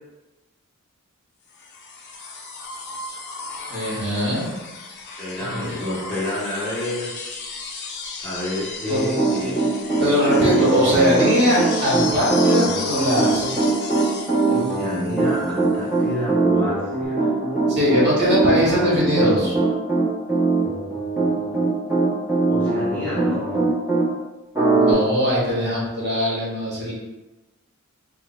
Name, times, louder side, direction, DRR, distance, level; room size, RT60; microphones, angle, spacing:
sound 1, 1.6-15.6 17.0-17.1, left 4 dB, 50° left, 0.5 m, -34 dB
voice 1, 3.7-4.5 5.4-5.8 8.9-9.0 10.0-13.6 17.7-19.6 24.7-26.9, equal, 50° right, -6 dB, 1.2 m, -21 dB
voice 2, 5.2-7.1 8.2-9.7 14.4-17.3 22.5-23.5, left 1 dB, 5° left, -9 dB, 1.0 m, -29 dB
Piano, 8.9-24.1 24.5-24.9, right 3 dB, 15° right, 0.9 m, -21 dB
3.2 x 2.1 x 4.2 m, 1.1 s
head